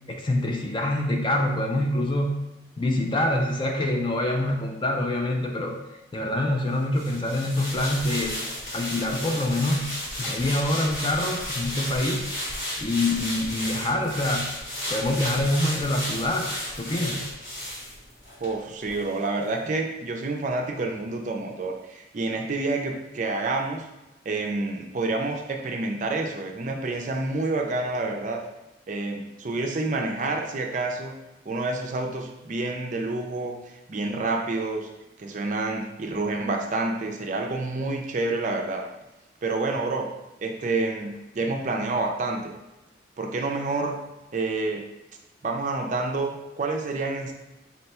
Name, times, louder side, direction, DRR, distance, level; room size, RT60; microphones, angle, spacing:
voice 1, 0.1-2.4 2.8-5.8 6.1-8.4 8.7-9.9 10.2-12.3 12.8-14.5 14.9-16.5 16.7-17.3, left 1 dB, 25° left, 2 dB, 0.4 m, -25 dB
sound 1, 6.9-18.5 18.9-19.0, left 1 dB, 45° left, 1.4 m, -33 dB
voice 2, 18.4-23.9 24.3-28.4 28.9-31.1 31.5-34.9 35.2-38.8 39.4-40.1 40.4-42.5 43.2-44.0 44.3-44.8 45.4-47.3, right 3 dB, 40° right, 2 dB, 0.4 m, -28 dB
4.0 x 2.2 x 4.1 m, 0.98 s
head